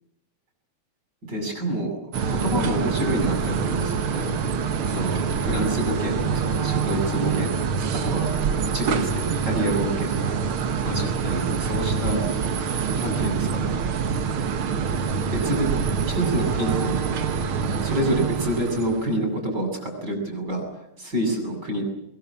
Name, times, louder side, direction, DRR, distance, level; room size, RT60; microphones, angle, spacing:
voice 1, 1.3-2.0 2.2-4.4 4.8-7.6 8.0-8.3 8.7-10.4 10.8-12.2 12.9-13.7 15.3-15.7 16.0-16.9 17.8-20.6 21.0-21.8, right 1 dB, 30° right, 3 dB, 8.2 m, -27 dB
sound 1, 2.1-19.1, right 6 dB, 50° right, 1.8 m, -25 dB
23.5 x 22.5 x 8.7 m, 0.76 s
omnidirectional pair, 3.6 m